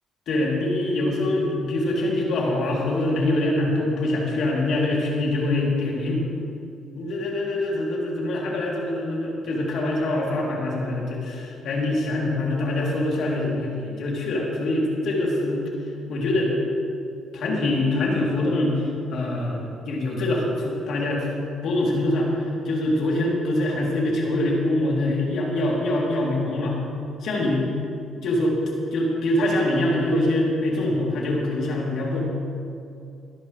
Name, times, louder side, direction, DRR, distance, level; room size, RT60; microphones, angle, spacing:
voice 1, 0.3-6.2 6.9-15.6 16.1-16.5 17.3-21.3 21.6-26.8 27.2-27.7 28.2-28.5 28.9-32.2, left 1 dB, 70° left, -3 dB, 3.4 m, -24 dB
20.5 x 10.5 x 3.4 m, 2.5 s
supercardioid pair, 70°, 0 cm